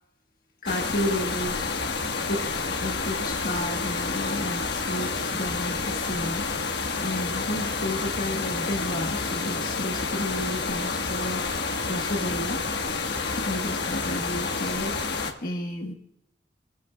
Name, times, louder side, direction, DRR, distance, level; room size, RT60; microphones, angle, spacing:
voice 1, 0.6-1.7 2.3-2.5 2.8-6.5 7.0-12.6 13.1-15.9, left 1 dB, 50° left, 1 dB, 1.3 m, -32 dB
sound 1, 0.7-15.3, left 4 dB, 70° left, 1.3 m, -29 dB
25.0 x 14.0 x 2.3 m, 0.77 s
head